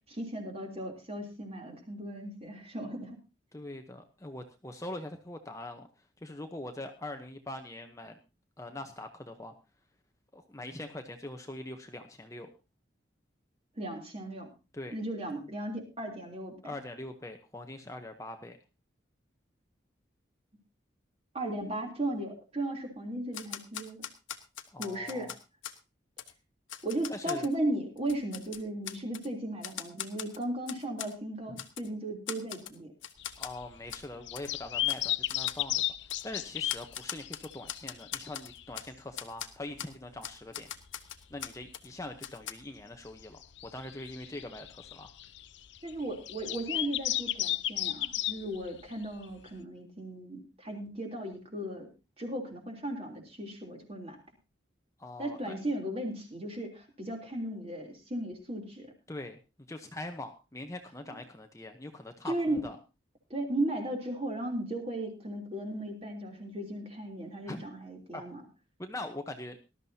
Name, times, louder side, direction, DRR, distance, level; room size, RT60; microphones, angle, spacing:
voice 1, 0.1-3.2 13.8-14.5 14.9-16.7 21.3-24.0 24.8-25.3 26.8-32.9 45.8-51.9 52.2-54.2 55.2-58.9 62.3-62.7 63.3-68.4, right 1 dB, 30° right, 2 dB, 3.3 m, -36 dB
voice 2, 3.5-5.9 6.2-8.1 8.6-9.5 10.3-12.5 14.7-14.9 16.6-18.6 24.7-25.3 27.1-27.5 33.4-35.8 36.2-40.7 41.3-43.4 43.7-45.1 55.0-55.6 59.1-59.4 59.7-62.8 67.5-67.6 68.1-68.2 68.8-69.6, left 1 dB, 15° left, 5 dB, 0.9 m, -42 dB
Typewriter, 23.3-25.8 26.2-26.3 26.7-27.5 28.0-29.3 29.6-31.1 31.6-31.9 32.3-32.8 33.0-33.5 33.9-34.1 34.4-34.5 34.9-35.0 35.3-35.6 36.1-36.2 36.7-38.9 39.2-39.5 39.8-39.9 40.2-41.9 42.2-42.5, left 10 dB, 85° left, 1.3 m, -41 dB
sound 1, 33.2-39.1 39.4-39.5 39.8-39.9 40.2-40.3 40.8-41.7 42.0-42.1 42.8-49.5, left 14 dB, 65° left, 0.7 m, -35 dB
19.0 x 12.5 x 2.8 m, 0.29 s
head